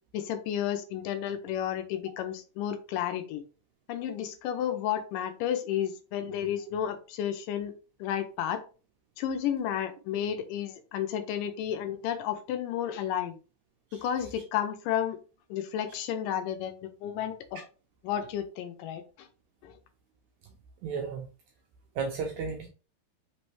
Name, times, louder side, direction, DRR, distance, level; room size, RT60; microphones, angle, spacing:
voice 1, 0.1-3.4 3.9-7.7 8.0-8.6 9.2-13.4 13.9-15.2 15.5-17.6 18.0-19.3 19.6-19.7, left 10 dB, 80° left, 2.2 m, -32 dB
voice 2, 20.8-21.3 22.0-22.7, right 5 dB, 80° right, 1.7 m, -33 dB
5.2 x 3.1 x 3.1 m
omnidirectional pair, 4.0 m